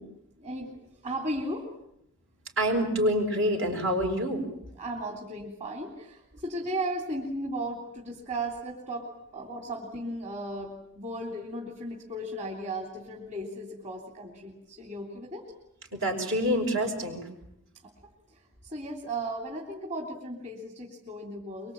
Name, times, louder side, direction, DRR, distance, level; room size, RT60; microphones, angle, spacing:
voice 1, 0.4-0.8 1.0-1.7 4.8-15.5 18.3-21.7, right 1 dB, 35° right, 1 dB, 3.4 m, -36 dB
voice 2, 2.6-4.5 6.3-6.4 15.9-17.3, equal, 65° right, 3 dB, 6.0 m, -27 dB
24.0 x 24.0 x 8.9 m, 0.76 s
head